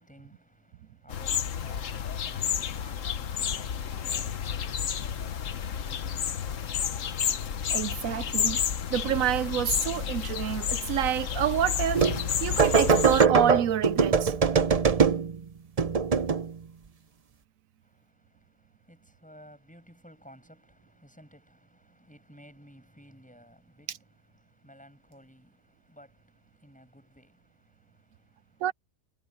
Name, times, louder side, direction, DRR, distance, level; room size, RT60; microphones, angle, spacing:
voice 1, 0.0-5.1 17.8-28.7, equal, 5° left, 7.6 m, -55 dB
sound 1, 1.1-13.3, left 8 dB, 70° left, 1.3 m, -31 dB
voice 2, 7.7-8.6 8.9-12.0 12.4-14.3 28.6-28.7, right 10 dB, 80° right, 1.0 m, -28 dB
sound 2, 11.9-12.3 12.6-15.4 15.8-16.5, right 5 dB, 35° right, 0.8 m, -22 dB
omnidirectional pair, 1.4 m